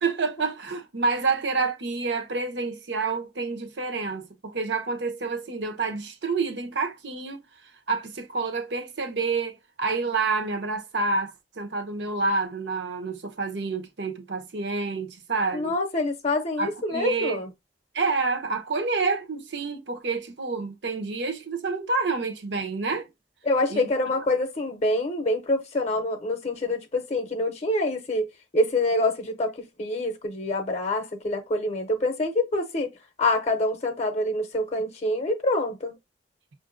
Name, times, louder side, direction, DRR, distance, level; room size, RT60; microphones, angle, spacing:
voice 1, 0.0-7.4 7.9-15.7 16.6-17.4 17.9-23.1 23.7-23.9, right 4 dB, 70° right, 0.8 m, -28 dB
voice 2, 15.5-17.5 23.4-28.3 28.5-32.9 33.2-36.0, left 1 dB, 35° left, 0.6 m, -26 dB
5.5 x 2.5 x 2.4 m
head